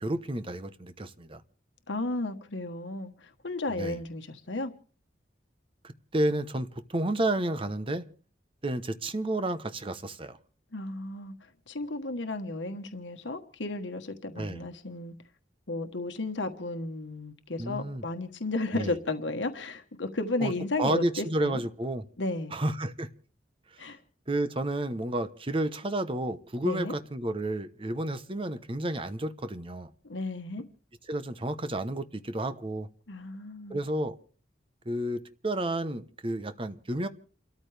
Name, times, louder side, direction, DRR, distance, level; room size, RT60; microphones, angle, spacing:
voice 1, 0.0-1.4 3.7-4.0 5.8-8.1 8.6-10.4 14.4-14.6 17.6-18.0 18.7-19.0 20.4-20.5 20.8-22.0 22.5-23.1 24.3-29.9 31.1-32.9 33.7-34.2 34.9-37.1, right 1 dB, 30° right, 0.9 m, -31 dB
voice 2, 1.9-4.7 10.7-11.3 11.7-15.1 15.7-21.6 22.2-22.6 23.8-24.0 26.6-26.9 30.0-30.6 33.1-33.8, left 2 dB, 80° left, 1.3 m, -33 dB
29.5 x 13.5 x 3.4 m
head